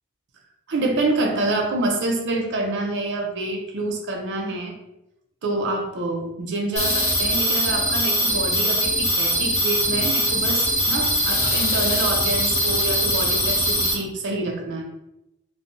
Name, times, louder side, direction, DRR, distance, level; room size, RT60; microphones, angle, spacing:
voice 1, 0.7-4.7 5.4-14.8, right 2 dB, 55° right, 1 dB, 0.5 m, -26 dB
sound 1, 6.8-13.9, equal, 30° left, 0.8 m, -22 dB
3.1 x 2.1 x 2.6 m, 0.88 s
head